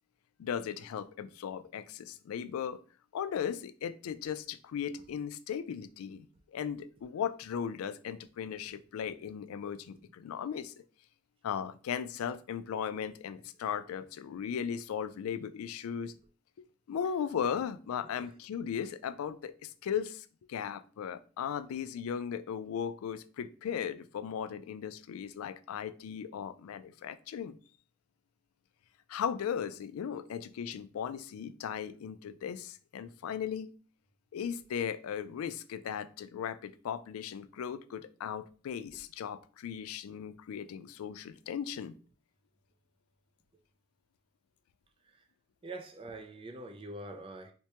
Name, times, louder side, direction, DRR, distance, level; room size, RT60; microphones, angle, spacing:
voice 1, 0.4-2.8 3.1-10.7 11.4-16.1 16.6-27.6 29.1-33.7 34.3-42.0, left 8 dB, 85° left, 0.3 m, -37 dB
voice 2, 45.6-47.5, right 2 dB, 25° right, 0.3 m, -44 dB
4.5 x 2.1 x 2.8 m
head